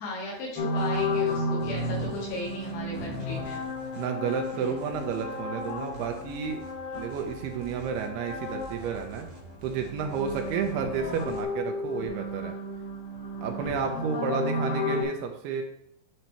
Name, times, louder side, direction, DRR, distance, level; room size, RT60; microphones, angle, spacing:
voice 1, 0.0-3.6 4.5-4.7 14.6-14.7, left 1 dB, 80° left, -6 dB, 4.1 m, -37 dB
sound 1, 0.6-9.1 9.4-15.0, left 2 dB, 65° left, 3.6 m, -33 dB
sound 2, 0.8-11.4, left 1 dB, 50° right, 1.5 m, -48 dB
voice 2, 4.0-6.6 6.9-9.3 9.6-12.5 13.4-15.6, right 7 dB, 80° right, 3 dB, 2.6 m, -31 dB
9.6 x 4.0 x 4.4 m, 0.79 s
omnidirectional pair, 4.9 m